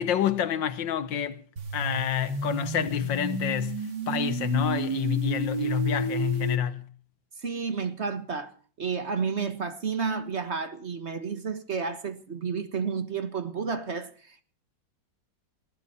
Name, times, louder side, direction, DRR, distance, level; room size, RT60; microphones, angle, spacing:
voice 1, 0.0-1.4 1.7-6.9, left 9 dB, 85° left, 1.8 m, -28 dB
sound 1, 1.6-6.6, right 4 dB, 65° right, 3.1 m, -32 dB
voice 2, 7.4-8.5 8.8-14.4, right 5 dB, 40° right, 1.6 m, -31 dB
20.0 x 16.0 x 4.2 m
omnidirectional pair, 2.0 m